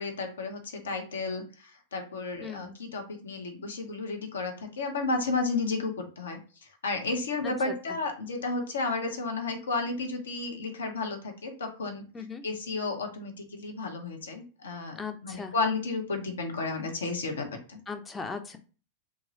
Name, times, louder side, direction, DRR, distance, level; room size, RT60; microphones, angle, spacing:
voice 1, 0.0-1.5 1.9-6.4 6.8-12.0 12.4-17.8, left 3 dB, 70° left, 3 dB, 0.8 m, -32 dB
voice 2, 2.4-2.7 7.4-7.7 12.1-12.4 15.0-15.5 17.9-18.6, left 4 dB, 15° left, 7 dB, 0.5 m, -38 dB
3.0 x 2.4 x 3.1 m, 0.37 s
figure-of-eight pair, 90°, 0 cm